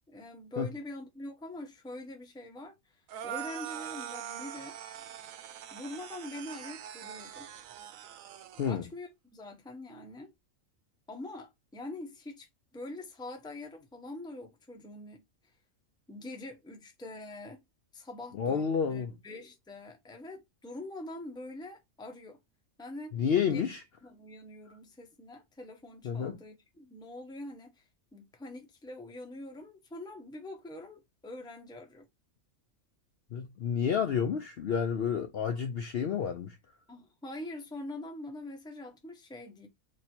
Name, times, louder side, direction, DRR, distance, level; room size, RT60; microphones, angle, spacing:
voice 1, 0.1-4.8 5.7-7.5 8.6-10.3 11.1-12.5 12.7-15.2 16.1-17.6 17.9-22.4 22.8-23.1 23.4-23.7 24.0-27.8 28.1-32.1 36.9-39.7, left 1 dB, 5° left, 0.6 m, -44 dB
sound 1, 3.1-8.7, right 10 dB, 80° right, 1.0 m, -43 dB
voice 2, 18.4-19.1 23.1-23.8 26.0-26.4 33.3-36.6, left 7 dB, 60° left, 0.6 m, -30 dB
3.1 x 2.7 x 4.3 m
omnidirectional pair, 1.4 m